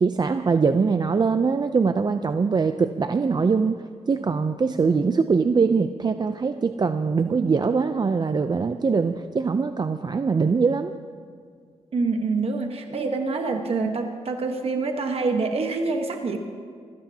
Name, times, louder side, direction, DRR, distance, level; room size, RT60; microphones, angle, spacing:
voice 1, 0.0-3.7 4.1-10.9, right 5 dB, 35° right, 9 dB, 0.5 m, -22 dB
voice 2, 11.9-16.4, right 3 dB, 55° right, 4 dB, 1.2 m, -26 dB
24.0 x 16.5 x 2.8 m, 2.1 s
cardioid pair, 75°, 12 cm